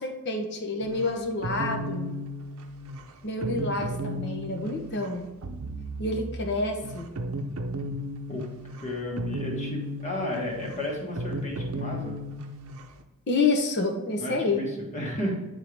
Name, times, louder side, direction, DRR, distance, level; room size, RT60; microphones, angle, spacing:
voice 1, 0.0-2.1 3.2-5.3 6.0-7.1 13.3-14.6, left 3 dB, 50° left, 3 dB, 0.9 m, -28 dB
sound 1, 0.8-13.0, equal, 70° right, 0.6 m, -35 dB
voice 2, 8.8-12.2 14.2-15.4, left 1 dB, 35° left, -1 dB, 1.5 m, -33 dB
8.9 x 3.7 x 3.4 m, 1.1 s
head